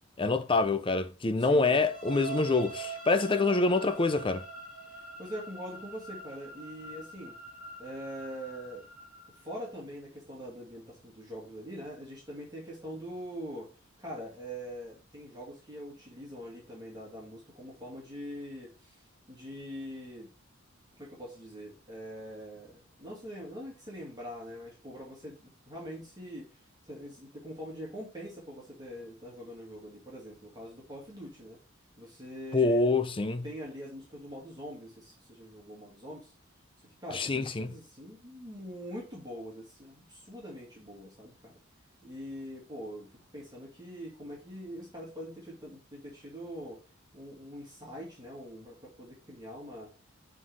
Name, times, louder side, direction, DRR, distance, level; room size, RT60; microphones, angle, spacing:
voice 1, 0.2-4.4 32.5-33.4 37.1-37.7, left 3 dB, 25° left, 0.6 m, -26 dB
voice 2, 1.4-1.8 4.8-7.4 7.8-8.9 9.4-13.7 14.0-19.0 19.3-20.3 21.0-26.6 26.8-31.6 32.0-32.9 33.4-36.3 36.8-41.5 42.0-46.8 47.1-49.9, equal, 20° right, 2.5 m, -43 dB
sound 1, 1.8-9.6, right 4 dB, 5° right, 3.9 m, -44 dB
7.5 x 4.0 x 3.6 m
head